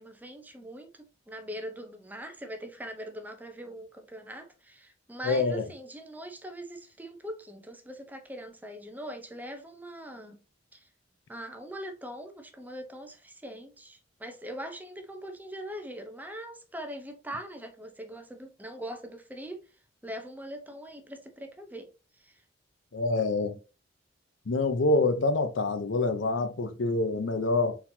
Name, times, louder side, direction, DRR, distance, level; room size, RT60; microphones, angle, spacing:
voice 1, 0.0-10.4 10.7-10.9 11.3-19.6 20.0-22.4, equal, 10° right, 0.6 m, -42 dB
voice 2, 5.2-5.6 22.9-23.6 24.5-27.8, left 3 dB, 75° left, 0.6 m, -26 dB
4.3 x 4.0 x 2.7 m
head